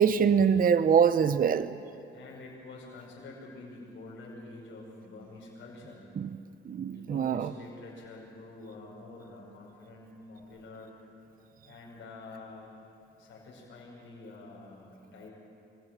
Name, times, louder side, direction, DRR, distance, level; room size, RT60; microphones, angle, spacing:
voice 1, 0.0-1.7 6.2-6.3 6.7-7.5, right 7 dB, 45° right, 13 dB, 0.7 m, -24 dB
voice 2, 2.1-6.1 6.9-11.0 11.6-12.8 13.2-15.3, left 2 dB, 70° left, -4 dB, 5.7 m, -47 dB
25.0 x 16.5 x 9.0 m, 2.6 s
cardioid pair, 90°, 20 cm